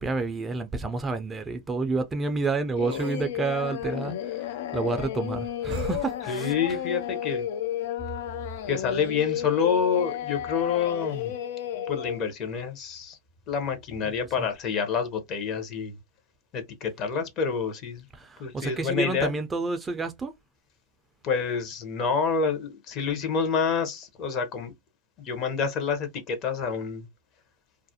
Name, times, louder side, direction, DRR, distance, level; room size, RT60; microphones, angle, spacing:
voice 1, 0.0-4.5 4.7-6.5 18.2-20.3, right 3 dB, 15° right, 0.4 m, -29 dB
sound 1, 0.5-0.6 2.9-3.3 5.7-6.2, right 7 dB, 75° right, 0.5 m, -42 dB
Singing, 2.8-12.2, left 11 dB, 70° left, 0.3 m, -32 dB
voice 2, 6.3-7.5 8.7-11.3 11.9-13.2 13.5-16.0 16.5-18.1 18.4-19.3 21.2-24.7 25.2-27.1, left 6 dB, 40° left, 0.7 m, -28 dB
2.3 x 2.0 x 2.7 m
hypercardioid pair, 120°, 0 cm